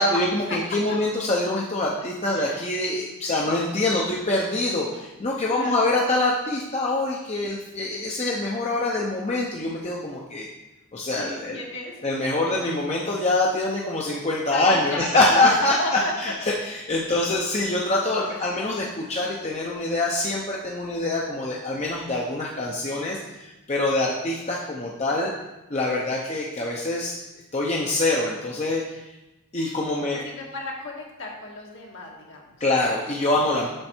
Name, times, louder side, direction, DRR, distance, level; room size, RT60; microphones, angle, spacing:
voice 1, 0.0-10.5 10.9-11.6 12.0-25.3 25.7-27.2 27.5-29.0 29.5-30.2 32.6-33.7, left 2 dB, 30° left, -3 dB, 0.7 m, -25 dB
voice 2, 5.5-5.9 11.1-12.2 14.5-16.1 23.9-24.1 30.1-32.6 33.4-33.7, left 1 dB, 60° left, -2 dB, 1.7 m, -35 dB
7.7 x 5.9 x 4.4 m, 1.0 s
head